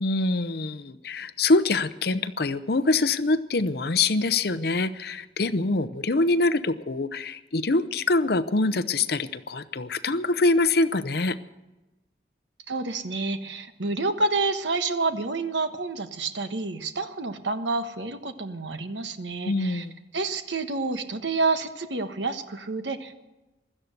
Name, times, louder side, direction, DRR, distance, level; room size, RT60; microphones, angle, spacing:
voice 1, 0.0-11.4 19.4-20.0, left 3 dB, 60° left, 13 dB, 0.7 m, -24 dB
voice 2, 12.7-19.8 20.1-23.2, right 3 dB, 90° right, 8 dB, 1.3 m, -29 dB
16.0 x 13.0 x 6.7 m, 1.0 s
head